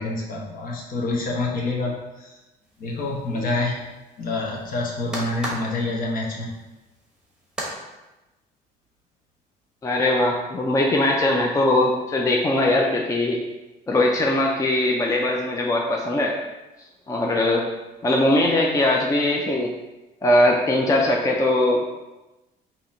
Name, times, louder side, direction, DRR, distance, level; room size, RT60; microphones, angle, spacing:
voice 1, 0.0-2.3 2.8-3.8 4.2-6.5, left 2 dB, 55° left, -2 dB, 1.1 m, -27 dB
sound 1, 2.6-7.8, right 1 dB, 5° right, 1.1 m, -37 dB
voice 2, 9.8-13.4 13.9-16.4 17.1-17.7 18.0-19.7 20.2-21.8, left 1 dB, 20° left, 0 dB, 0.5 m, -20 dB
3.8 x 2.9 x 4.2 m, 1.1 s
cardioid pair, 110°, 17 cm